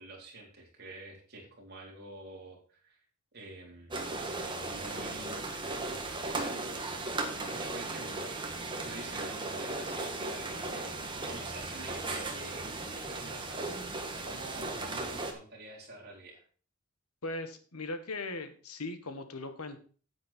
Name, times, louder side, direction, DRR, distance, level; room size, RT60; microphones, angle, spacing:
voice 1, 0.0-3.0 3.3-4.1 4.7-6.1 7.5-8.3 8.8-13.8 14.2-16.4, right 2 dB, 45° right, -2 dB, 3.9 m, -48 dB
sound 1, 3.9-15.3, right 2 dB, 20° right, 1.6 m, -37 dB
voice 2, 17.2-19.8, left 2 dB, 85° left, 9 dB, 1.6 m, -39 dB
9.5 x 8.8 x 4.4 m, 0.40 s
head